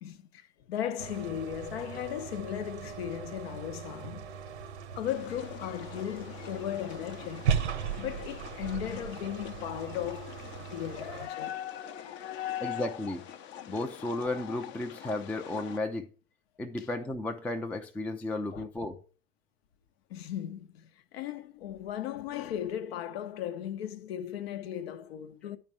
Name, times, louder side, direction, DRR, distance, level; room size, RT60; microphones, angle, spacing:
voice 1, 0.0-4.3 5.0-7.5 8.0-13.0 16.8-16.9 18.5-18.7 20.1-25.6, left 10 dB, 65° left, 0.8 m, -37 dB
sound 1, 1.0-11.3, right 7 dB, 80° right, 1.0 m, -37 dB
sound 2, 5.1-15.8, left 9 dB, 35° left, 0.8 m, -46 dB
voice 2, 12.6-13.2 13.7-16.1 16.6-19.0, left 2 dB, 5° left, 0.4 m, -34 dB
10.0 x 4.4 x 4.6 m
hypercardioid pair, 95°, 34 cm